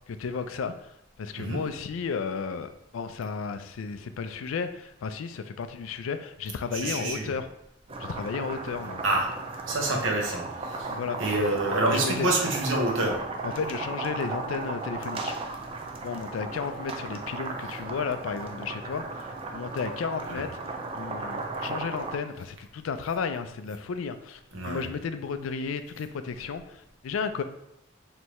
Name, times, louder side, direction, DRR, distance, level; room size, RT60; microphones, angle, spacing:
voice 1, 0.1-7.5 8.0-9.0 10.9-11.2 11.9-12.3 13.4-15.4 16.0-27.4, left 5 dB, 85° left, 10 dB, 0.4 m, -33 dB
voice 2, 6.7-7.3 9.0-9.3 9.7-13.2 20.3-20.4 24.5-24.9, right 2 dB, 75° right, 0 dB, 0.9 m, -27 dB
sound 1, 7.9-22.2, right 3 dB, 30° right, 0.4 m, -35 dB
4.4 x 3.3 x 3.0 m, 0.82 s
head